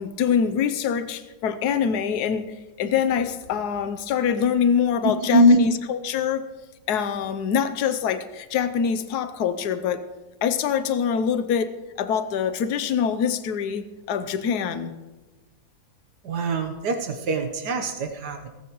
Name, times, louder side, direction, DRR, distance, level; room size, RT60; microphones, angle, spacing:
voice 1, 0.0-6.5 6.9-10.0 10.4-14.9, left 7 dB, 80° left, 11 dB, 1.3 m, -24 dB
voice 2, 16.2-18.5, left 1 dB, 90° right, 4 dB, 1.7 m, -21 dB
17.5 x 15.5 x 3.1 m, 1.2 s
omnidirectional pair, 1.7 m